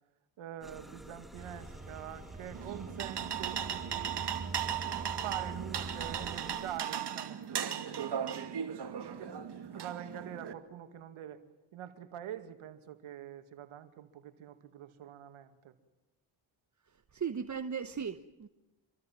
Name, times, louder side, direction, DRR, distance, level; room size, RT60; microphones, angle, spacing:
voice 1, 0.4-4.2 5.0-8.7 9.0-9.4 9.7-11.4 11.7-15.7, right 10 dB, 90° right, 2.4 m, -45 dB
sound 1, 0.6-6.8, right 1 dB, ahead, 2.6 m, -52 dB
sound 2, 1.3-6.4, right 3 dB, 15° right, 3.5 m, -45 dB
sound 3, 2.5-10.5, right 9 dB, 55° right, 2.6 m, -37 dB
voice 2, 17.1-18.5, right 7 dB, 35° right, 1.3 m, -37 dB
27.0 x 23.5 x 7.5 m
cardioid pair, 90°, 48 cm